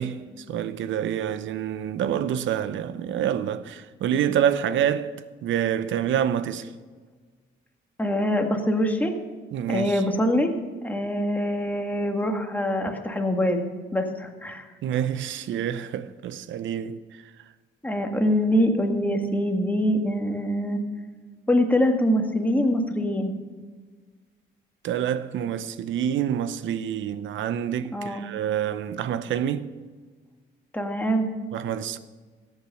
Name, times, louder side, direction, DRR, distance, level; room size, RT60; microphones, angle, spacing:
voice 1, 0.0-5.1 5.4-6.7 9.5-10.0 14.8-17.0 24.8-29.7 31.5-32.0, right 9 dB, 75° right, 0.7 m, -27 dB
voice 2, 8.0-9.1 9.7-10.5 10.8-13.6 13.9-14.6 17.8-20.8 21.5-23.3 27.9-28.2 30.7-31.3, equal, 10° left, 1.8 m, -24 dB
14.5 x 8.8 x 5.9 m
cardioid pair, 90°, 20 cm